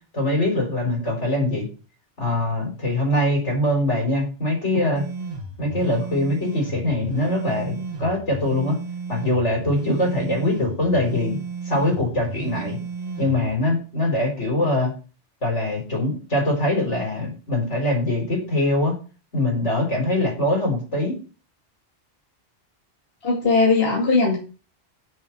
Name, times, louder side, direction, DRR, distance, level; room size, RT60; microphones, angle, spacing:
voice 1, 0.1-1.7 2.2-5.1 5.6-8.8 9.1-11.4 11.6-12.8 13.2-14.9 15.4-19.0 19.3-21.2, left 1 dB, 85° left, 0 dB, 4.4 m, -23 dB
sound 1, 5.0-13.5, right 4 dB, 35° right, 1.3 m, -33 dB
voice 2, 23.2-24.4, left 3 dB, 60° left, -2 dB, 2.4 m, -19 dB
7.3 x 6.0 x 7.1 m, 0.35 s
omnidirectional pair, 1.2 m